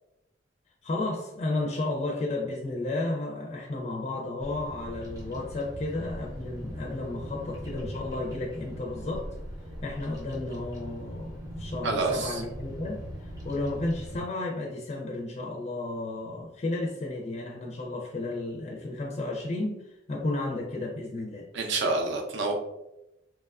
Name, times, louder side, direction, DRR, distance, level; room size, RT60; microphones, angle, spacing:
voice 1, 0.8-9.3 9.8-19.8 20.1-21.5, left 2 dB, 35° left, -2 dB, 0.4 m, -33 dB
Bird vocalization bird call bird song, 4.4-14.2, equal, 20° right, 0.6 m, -40 dB
voice 2, 11.8-12.4 21.5-22.5, right 3 dB, 70° right, 2 dB, 0.5 m, -27 dB
3.0 x 2.2 x 2.3 m, 0.90 s
head